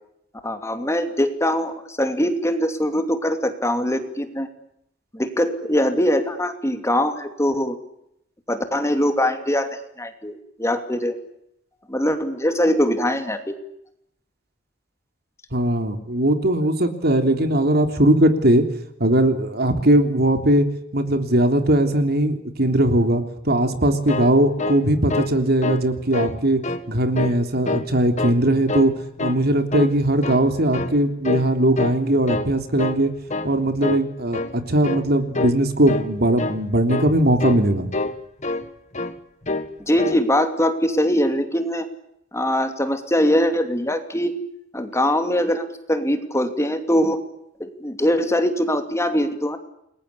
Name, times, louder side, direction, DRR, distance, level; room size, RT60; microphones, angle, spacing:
voice 1, 0.4-4.5 5.1-7.8 8.5-9.7 10.0-11.2 11.9-13.5 39.9-41.9 42.3-44.4 44.7-47.2 47.6-49.6, equal, 15° left, 7 dB, 2.7 m, -22 dB
voice 2, 15.5-18.6 19.0-20.7 20.9-26.6 26.9-28.9 29.2-33.1 33.4-37.9, right 1 dB, 55° right, 8 dB, 3.4 m, -19 dB
sound 1, 23.8-25.4 25.6-25.9 26.1-26.8 27.1-27.9 28.2-28.9 29.2-29.4 29.7-30.5 30.7-31.0 31.2-31.5 31.8-32.5 32.8-33.0 33.3-33.5 33.8-34.1 34.3-34.6 34.8-35.1 35.3-35.6 35.8-36.1 36.4-36.6 36.9-37.1 37.4-37.6 37.9-38.7 38.9-39.2 39.4-39.7 40.0-40.2, left 2 dB, 40° left, 1.8 m, -26 dB
29.0 x 21.5 x 8.6 m, 0.77 s
head